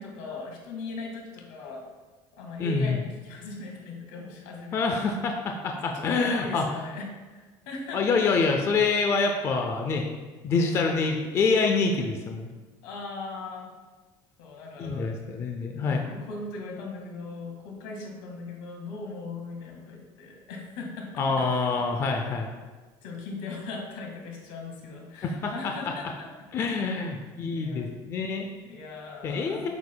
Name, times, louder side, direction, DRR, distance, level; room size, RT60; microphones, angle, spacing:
voice 1, 0.0-1.8 2.3-5.1 5.8-7.1 7.3-8.4 10.7-10.9 12.8-13.7 14.4-15.4 15.8-21.8 23.0-26.3 27.5-27.9 28.6-29.7, left 3 dB, 80° left, 0 dB, 1.7 m, -39 dB
voice 2, 2.6-3.0 4.7-6.6 7.9-10.1 10.4-12.5 14.8-16.1 21.2-22.5 25.2-25.7 26.5-28.5 29.2-29.7, left 4 dB, 25° left, 3 dB, 0.4 m, -26 dB
8.2 x 6.8 x 2.2 m, 1.3 s
cardioid pair, 175°, 11 cm